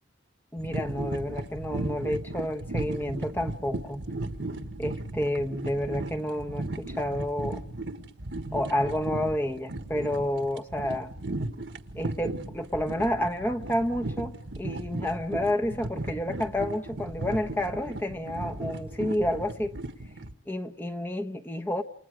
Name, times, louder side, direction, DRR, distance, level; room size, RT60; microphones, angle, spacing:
voice 1, 0.5-4.0 4.8-7.6 8.5-11.1 11.9-19.8 20.5-21.8, left 1 dB, 10° left, 1.0 m, -30 dB
sound 1, 0.6-20.3, right 2 dB, 70° right, 1.5 m, -36 dB
29.0 x 28.0 x 5.0 m
head